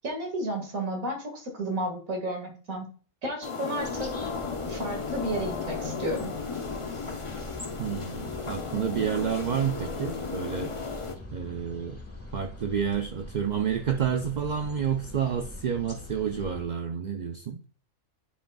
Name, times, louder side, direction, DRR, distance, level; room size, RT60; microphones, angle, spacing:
voice 1, 0.0-2.9 3.2-4.1 4.7-6.3, right 1 dB, 90° right, 2 dB, 2.3 m, -32 dB
sound 1, 3.4-11.2, left 4 dB, 30° left, 0.7 m, -35 dB
sound 2, 3.8-16.6, left 1 dB, 10° left, 1.2 m, -43 dB
voice 2, 7.8-10.7 11.3-12.0 12.3-17.6, right 8 dB, 55° right, 5 dB, 0.5 m, -29 dB
10.0 x 5.2 x 2.3 m, 0.41 s
omnidirectional pair, 1.4 m